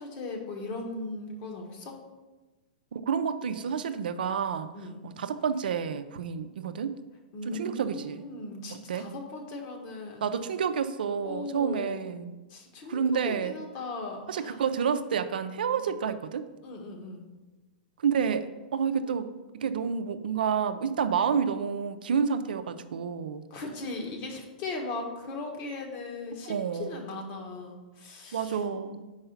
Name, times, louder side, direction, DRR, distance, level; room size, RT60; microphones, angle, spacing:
voice 1, 0.0-2.0 4.7-5.0 7.3-10.2 11.2-12.1 12.5-14.6 15.9-16.0 16.6-17.3 23.5-28.6, left 3 dB, 45° left, 2 dB, 1.5 m, -38 dB
voice 2, 2.9-4.7 5.0-6.9 7.5-8.3 8.7-9.1 10.2-12.4 12.9-13.6 14.3-16.4 18.0-23.4 26.4-27.1 28.3-29.0, right 7 dB, 75° right, 10 dB, 0.5 m, -29 dB
5.5 x 4.8 x 5.7 m, 1.2 s
hypercardioid pair, 125°, 5 cm